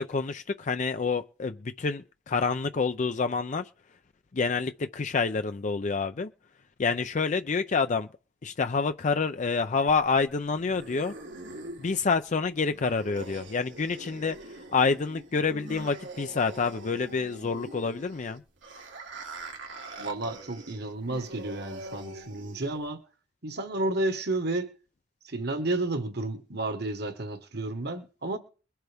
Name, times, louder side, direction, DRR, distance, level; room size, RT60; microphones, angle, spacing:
voice 1, 0.0-3.7 4.3-6.3 6.8-8.1 8.4-11.1 11.8-14.4 14.7-18.4, left 4 dB, 40° left, 0.5 m, -28 dB
sound 1, 9.9-22.9, right 2 dB, 90° right, 2.5 m, -44 dB
voice 2, 20.0-23.0 23.4-24.7 25.2-28.4, right 2 dB, 60° right, 1.5 m, -31 dB
22.0 x 7.9 x 3.5 m
head